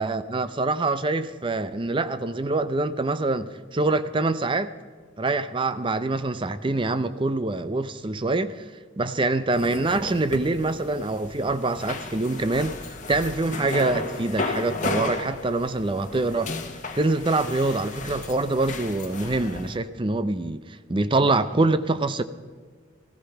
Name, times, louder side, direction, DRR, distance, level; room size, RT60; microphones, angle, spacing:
voice 1, 0.0-4.7 5.2-8.6 9.0-16.5 17.0-22.2, right 2 dB, 25° right, 0.5 m, -25 dB
sound 1, 9.5-19.8, left 3 dB, 40° left, 1.3 m, -34 dB
14.5 x 14.0 x 5.7 m
head